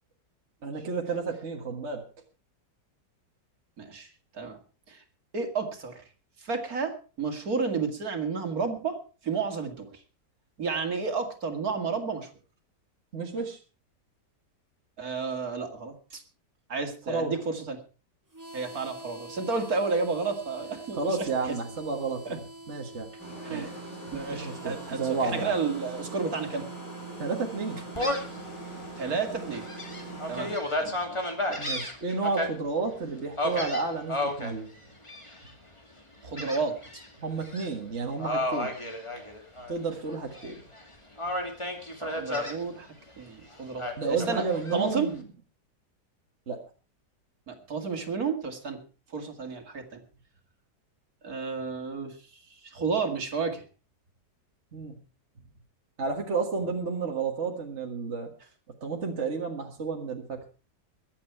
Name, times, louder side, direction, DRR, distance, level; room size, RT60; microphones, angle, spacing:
voice 1, 0.6-2.0 13.1-13.6 17.1-17.3 21.0-22.4 22.7-23.1 23.5-23.6 24.1-25.5 27.2-27.8 31.6-34.7 37.2-38.7 39.7-40.6 44.0-45.2 46.5-46.6 54.7-55.0 56.0-58.3 58.8-60.4, right 4 dB, 40° right, 2 dB, 2.0 m, -31 dB
voice 2, 3.8-4.1 4.3-4.6 4.9-5.0 5.3-6.0 6.4-9.0 9.2-9.9 10.6-12.3 15.0-16.2 16.7-17.8 18.5-21.6 22.3-22.4 23.4-23.8 24.1-26.6 29.0-29.6 30.3-30.5 30.8-31.6 36.2-37.0 42.0-42.9 43.2-45.1 47.5-48.8 49.1-50.0 51.2-52.2 52.6-53.6, right 4 dB, 55° right, 5 dB, 2.7 m, -31 dB
Harmonica, 18.3-31.0, right 1 dB, 10° right, 2.6 m, -48 dB
sound 1, 23.2-30.6, right 2 dB, 75° left, 6.3 m, -41 dB
Gull seagull, 27.9-28.4 28.9-29.0 29.5-32.5 33.4-34.5 35.0-35.5 36.4-37.1 37.4-37.6 38.2-39.7 40.1-40.8 41.2-42.6 43.8-44.8, left 1 dB, 15° left, 2.5 m, -32 dB
22.5 x 8.6 x 4.6 m, 0.35 s
omnidirectional pair, 1.9 m